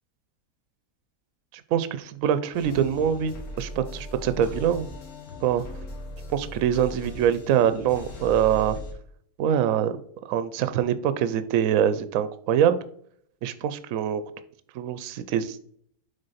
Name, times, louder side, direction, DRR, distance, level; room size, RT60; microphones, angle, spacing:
voice 1, 1.7-4.9 5.4-5.6 6.3-8.8 9.4-10.0 10.2-12.8 13.4-14.2 14.7-15.6, right 9 dB, 65° right, 12 dB, 0.9 m, -24 dB
sound 1, 2.5-8.9, left 1 dB, 65° left, 1.7 m, -39 dB
6.7 x 3.8 x 4.1 m, 0.63 s
omnidirectional pair, 1.7 m